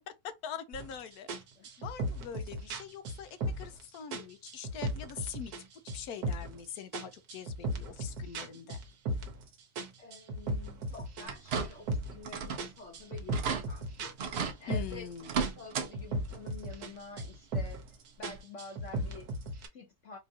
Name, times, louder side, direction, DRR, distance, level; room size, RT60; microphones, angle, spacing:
voice 1, 0.4-1.3 1.8-3.3 3.6-5.5 5.9-8.8 14.7-15.3, left 8 dB, 80° left, 1.1 m, -43 dB
sound 1, 0.7-0.9 1.3-3.8 4.1-5.6 5.9-6.6 6.9-9.4 9.8-12.2 12.6-15.1 15.4-16.9 17.2-17.9 18.2-19.7, right 1 dB, 85° right, 1.3 m, -36 dB
voice 2, 10.0-15.0 15.3-20.2, left 3 dB, 60° left, 1.1 m, -49 dB
sound 2, 11.2-11.9 12.2-12.7 13.0-13.1 13.3-13.6 14.2-14.6 15.2-15.9 16.2-16.4 17.7-17.8 18.3-18.4, right 6 dB, 55° right, 0.7 m, -34 dB
4.4 x 2.5 x 2.7 m
omnidirectional pair, 1.6 m